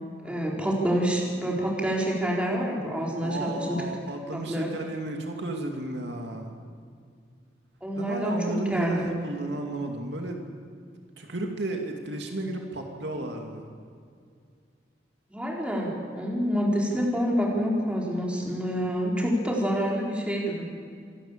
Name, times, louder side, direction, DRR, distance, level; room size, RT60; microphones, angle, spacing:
voice 1, 0.2-3.8 4.3-4.7 7.8-8.4 8.7-9.2 15.3-20.6, equal, 5° right, -3 dB, 4.2 m, -27 dB
voice 2, 3.2-6.5 8.0-10.4 11.2-13.6, right 2 dB, 70° right, 2 dB, 2.5 m, -33 dB
27.0 x 12.0 x 8.8 m, 2.3 s
head